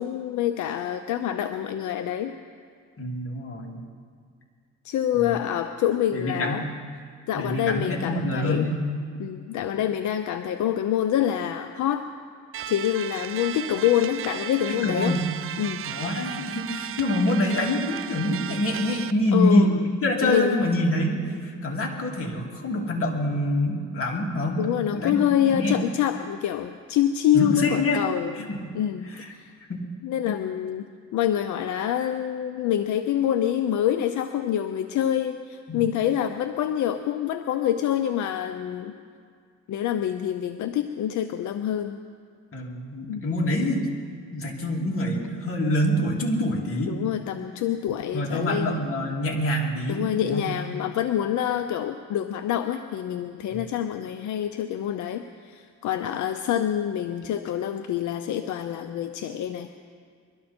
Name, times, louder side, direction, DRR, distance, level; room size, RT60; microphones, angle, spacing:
voice 1, 0.0-2.3 4.8-6.6 7.3-8.7 9.2-12.1 12.7-15.2 15.6-15.9 19.3-19.8 20.2-20.6 24.6-28.5 28.7-29.5 30.0-38.9 39.7-41.9 43.1-43.2 46.9-48.8 49.9-59.7, left 10 dB, 75° left, 8 dB, 0.7 m, -26 dB
voice 2, 3.0-3.8 5.1-5.4 6.1-6.7 7.3-8.8 14.7-15.3 15.9-24.6 24.9-25.7 27.3-28.0 28.5-28.7 29.1-29.3 29.7-29.8 35.7-35.8 42.5-43.9 44.3-47.0 48.1-50.5 53.5-53.6, left 1 dB, 45° left, -1 dB, 2.7 m, -26 dB
sound 1, 12.5-19.1, right 11 dB, 45° right, 0.5 m, -35 dB
22.5 x 12.5 x 4.4 m, 2.1 s
cardioid pair, 90°, 30 cm